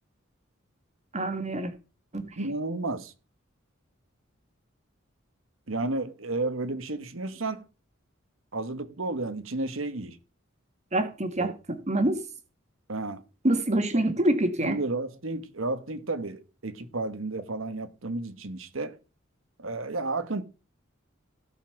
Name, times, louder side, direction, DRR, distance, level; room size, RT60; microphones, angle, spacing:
voice 1, 1.1-1.7 2.1-2.2 10.9-12.2 13.4-14.8, right 1 dB, 35° right, 2.0 m, -26 dB
voice 2, 2.4-3.1 5.7-7.6 8.5-10.2 11.4-11.5 12.9-13.2 14.6-19.0 19.6-20.4, right 2 dB, 75° right, 1.4 m, -32 dB
16.5 x 5.8 x 6.0 m
head